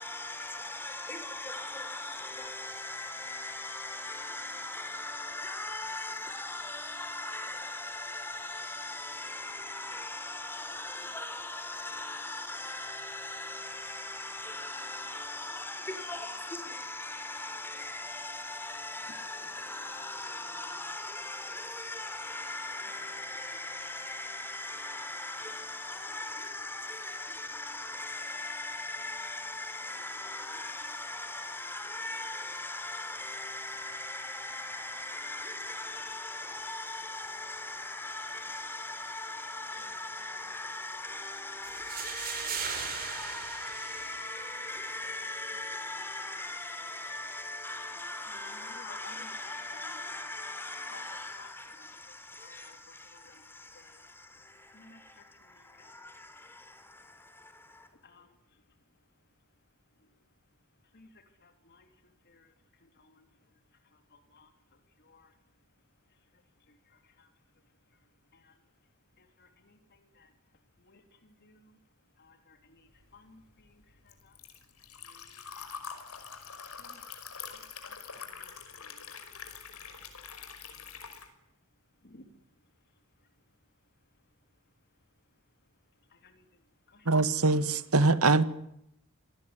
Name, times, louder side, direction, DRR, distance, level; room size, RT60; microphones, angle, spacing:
voice 1, 0.0-57.9, left 2 dB, 10° left, 4.3 m, -39 dB
voice 2, 18.5-20.8 22.7-23.9 25.6-26.9 29.6-30.6 39.3-41.6 45.4-53.4 53.7-54.1 54.7-56.0 56.9-57.0 57.9-58.6 60.0-60.1 60.9-65.3 66.1-67.3 67.9-68.0 68.3-68.6 69.2-70.3 70.8-71.8 72.2-74.4 74.9-76.0 76.7-81.0 82.0-82.4 83.2-83.3 86.1-86.6 86.9-87.1, left 4 dB, 50° left, 3.4 m, -59 dB
sound 1, 41.6-44.7, right 7 dB, 45° right, 6.0 m, -38 dB
Liquid, 73.0-81.3, left 6 dB, 90° left, 5.5 m, -45 dB
voice 3, 87.1-88.4, right 3 dB, 80° right, 2.0 m, -23 dB
26.5 x 19.0 x 9.8 m
head